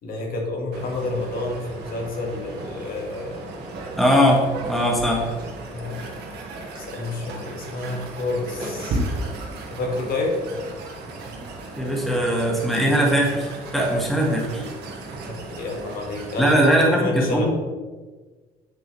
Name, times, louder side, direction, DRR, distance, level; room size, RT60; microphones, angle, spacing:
voice 1, 0.0-3.4 5.7-6.0 6.8-9.0 9.7-10.4 15.3-17.4, left 2 dB, 60° left, 0 dB, 2.0 m, -29 dB
sound 1, 0.7-16.7, right 2 dB, 80° right, 1.8 m, -35 dB
voice 2, 4.0-5.2 11.8-14.7 16.4-17.4, equal, ahead, -2 dB, 1.7 m, -20 dB
Clapping, 5.4-5.6 6.7-6.9 8.2-8.3 8.6-8.9 9.9-10.1, equal, 25° right, 2.5 m, -38 dB
7.9 x 7.7 x 3.4 m, 1.4 s
cardioid pair, 110°, 17 cm